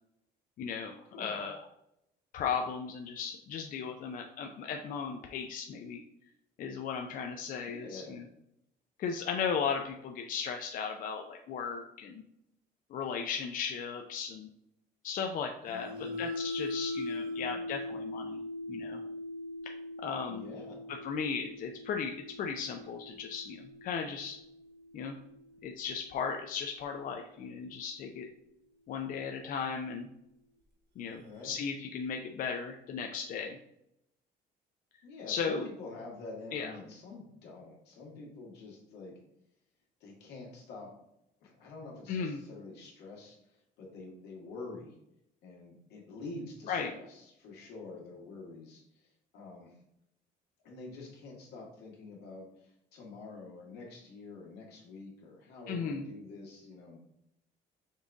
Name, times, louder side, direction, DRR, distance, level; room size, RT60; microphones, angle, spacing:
voice 1, 0.6-1.6 2.3-6.0 6.6-8.3 9.0-12.2 12.9-14.5 15.0-18.4 18.7-19.0 19.6-19.7 20.0-20.5 20.9-24.4 24.9-25.2 25.6-28.3 28.9-30.1 31.0-33.6 35.3-35.7 36.5-36.7 42.1-42.4 46.7-47.0 55.7-56.1, left 6 dB, 55° left, 3 dB, 0.5 m, -36 dB
voice 2, 7.6-8.2 15.7-16.2 17.4-17.7 20.3-20.8 31.1-31.5 35.0-39.2 40.0-40.9 41.4-43.4 43.8-45.0 45.4-49.8 50.6-57.0, left 3 dB, 85° left, -1 dB, 1.5 m, -47 dB
sound 1, 15.7-25.7, left 2 dB, 70° right, 1.0 m, -41 dB
5.4 x 2.6 x 3.5 m, 0.78 s
cardioid pair, 110°, 17 cm